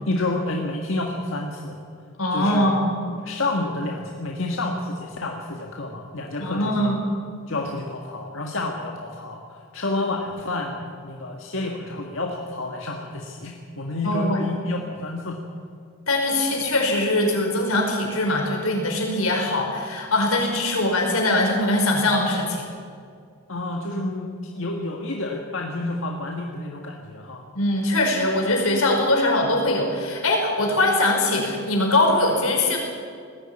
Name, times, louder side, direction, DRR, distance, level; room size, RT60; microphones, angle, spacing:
voice 1, 0.1-1.8 2.3-2.7 3.2-6.9 7.5-15.4 23.5-27.4, left 2 dB, 65° left, 0 dB, 1.7 m, -29 dB
voice 2, 2.2-2.9 6.4-7.0 14.0-14.4 16.1-22.7 27.5-32.8, left 1 dB, 85° left, 1 dB, 5.2 m, -22 dB
19.5 x 15.0 x 8.9 m, 2.2 s
head